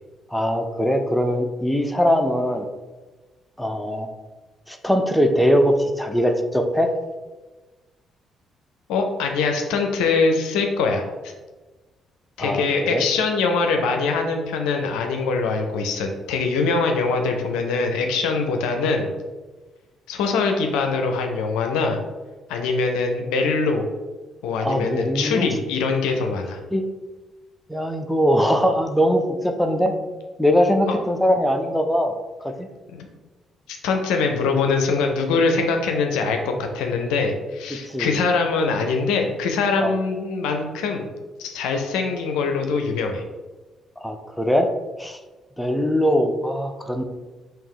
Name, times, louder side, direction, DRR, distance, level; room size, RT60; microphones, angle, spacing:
voice 1, 0.3-2.7 3.6-4.1 4.7-6.9 12.4-12.7 12.9-13.0 24.6-25.5 26.7-26.8 27.7-29.9 30.4-32.1 32.4-32.7 37.7-38.2 39.8-40.0 44.0-44.7 45.0-45.2 45.6-47.0, equal, 5° left, 5 dB, 0.6 m, -21 dB
voice 2, 8.9-11.0 12.4-19.1 20.1-22.0 22.5-23.8 24.4-26.6 32.9-33.1 33.7-41.1 41.4-43.2, left 4 dB, 75° left, 4 dB, 0.5 m, -23 dB
3.6 x 3.0 x 4.7 m, 1.2 s
hypercardioid pair, 50°, 0 cm